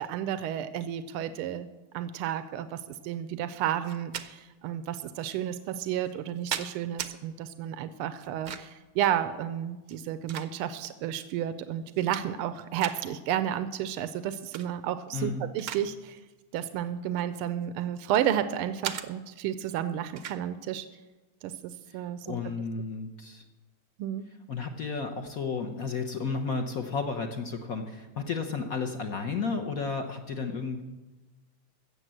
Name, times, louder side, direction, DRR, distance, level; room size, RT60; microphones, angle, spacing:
voice 1, 0.0-1.7 1.9-16.2 16.5-20.9 21.4-22.3 24.0-24.3, right 10 dB, 85° right, 11 dB, 1.5 m, -32 dB
sound 1, 3.8-4.3 5.2-5.3 6.1-7.1 8.2-8.8 9.8-10.9 11.4-11.5 11.8-12.5 12.8-13.0 14.3-14.7 15.1-15.9 16.2-16.4 17.2-18.3 18.8-19.1 20.2-20.4, right 9 dB, 65° right, 0.9 m, -38 dB
voice 2, 15.1-15.5 21.9-23.4 24.5-30.8, left 4 dB, 55° left, 4 dB, 1.1 m, -33 dB
16.0 x 6.9 x 7.5 m, 1.2 s
omnidirectional pair, 2.4 m